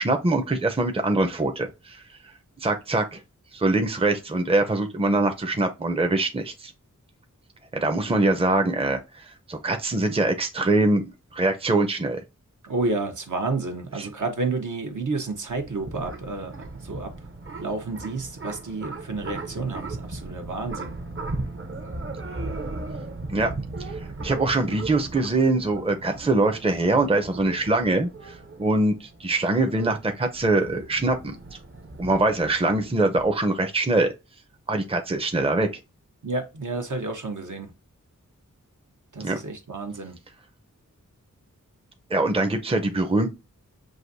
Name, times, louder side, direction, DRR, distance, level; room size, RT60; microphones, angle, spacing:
voice 1, 0.0-2.0 2.6-3.2 3.5-6.7 7.7-9.0 9.5-12.2 14.0-14.1 23.3-23.5 24.2-31.4 32.0-34.1 34.7-35.7 39.2-39.4 42.1-43.3, right 2 dB, 20° right, 0.6 m, -23 dB
voice 2, 12.6-17.1 17.6-20.9 36.2-37.7 39.1-40.2, right 3 dB, 65° right, 1.0 m, -30 dB
sound 1, 15.2-33.3, right 2 dB, 40° right, 0.9 m, -37 dB
6.2 x 2.6 x 2.6 m
wide cardioid pair, 60°, 32 cm